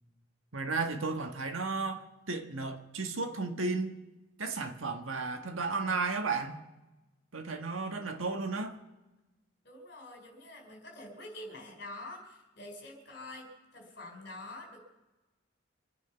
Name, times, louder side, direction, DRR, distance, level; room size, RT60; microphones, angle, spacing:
voice 1, 0.5-4.0 4.4-6.6 7.3-8.8, right 3 dB, 85° right, 1.6 m, -34 dB
voice 2, 9.6-14.8, left 1 dB, 55° left, 4.5 m, -46 dB
26.0 x 9.3 x 5.8 m
head